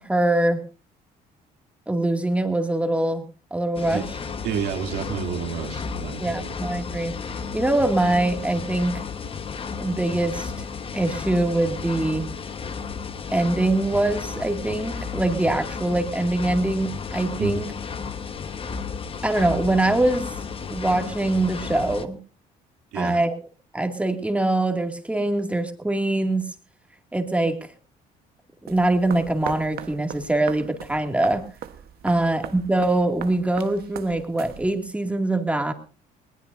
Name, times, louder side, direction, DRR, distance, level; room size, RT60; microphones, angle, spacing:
voice 1, 0.1-0.6 1.9-4.0 6.2-7.1 7.5-9.0 9.8-10.7 10.9-12.3 13.3-17.7 19.2-20.3 20.7-22.2 22.9-23.3 23.7-26.4 27.1-27.6 28.6-31.4 32.0-35.7, right 2 dB, 5° right, 5 dB, 2.3 m, -23 dB
sound 1, 3.7-22.0, left 5 dB, 35° left, 1.3 m, -33 dB
voice 2, 4.4-6.6 17.4-17.6 22.9-23.2 32.1-32.2, right 8 dB, 85° right, 4 dB, 2.9 m, -30 dB
sound 2, 28.7-35.0, right 10 dB, 65° right, 1.2 m, -39 dB
20.5 x 19.5 x 2.7 m, 0.35 s
cardioid pair, 110°, 17 cm